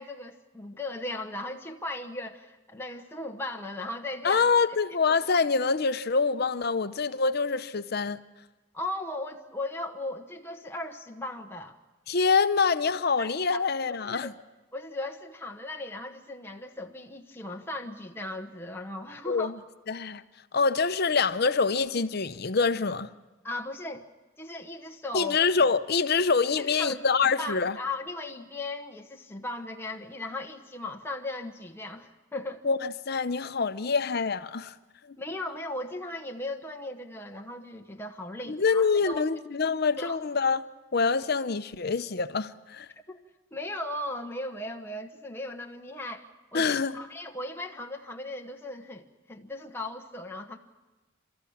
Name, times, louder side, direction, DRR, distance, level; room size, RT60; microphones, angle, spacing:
voice 1, 0.0-4.8 8.7-11.8 13.2-13.6 14.0-14.3 14.7-19.5 23.4-24.1 24.4-25.4 26.6-27.0 27.4-32.6 35.2-39.3 40.0-40.2 43.1-43.2 43.5-46.2 46.5-50.6, left 2 dB, 10° left, 1.1 m, -37 dB
voice 2, 4.2-8.2 12.1-14.3 19.3-19.6 19.9-20.2 20.5-23.1 25.1-27.8 32.6-34.7 35.1-35.2 38.5-40.6 40.9-42.9 46.5-47.0, left 4 dB, 50° left, 0.7 m, -25 dB
29.0 x 13.5 x 8.6 m
head